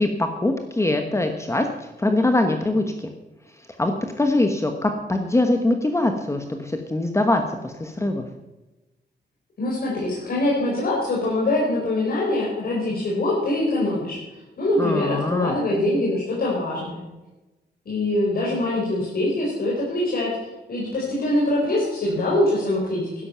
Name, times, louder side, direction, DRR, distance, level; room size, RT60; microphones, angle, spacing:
voice 1, 0.0-1.7 2.0-3.1 3.8-8.2 14.8-15.5, left 2 dB, 15° left, 5 dB, 1.1 m, -23 dB
voice 2, 9.6-14.2 14.6-17.0 17.8-20.3 20.7-23.0, left 1 dB, 60° left, -5 dB, 4.6 m, -23 dB
12.5 x 11.0 x 5.7 m, 1.0 s
wide cardioid pair, 155°, 18 cm